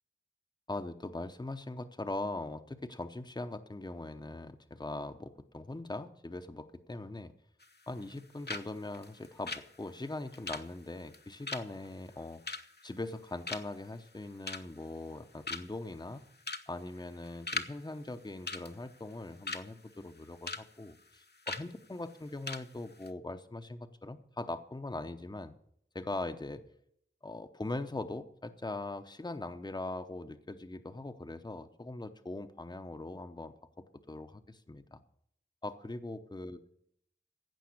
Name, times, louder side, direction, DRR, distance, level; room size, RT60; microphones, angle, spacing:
voice 1, 0.7-7.3 7.9-12.4 12.8-16.2 16.7-25.5 25.9-26.6 27.2-35.0 35.6-36.6, left 2 dB, 20° left, 8 dB, 0.8 m, -41 dB
sound 1, 7.6-8.2 8.5-8.7 8.9-13.2 13.5-13.9 14.2-14.8 15.2-15.3 15.5-15.9 16.4-16.7 17.0-17.7 18.0-18.1 18.5-19.7 20.1-20.6 20.9-21.1 21.5-21.7 22.1-22.2 22.5-22.7 22.9-23.1, left 3 dB, 55° left, 1.1 m, -39 dB
15.5 x 5.6 x 8.6 m, 0.70 s
wide cardioid pair, 70°, 20 cm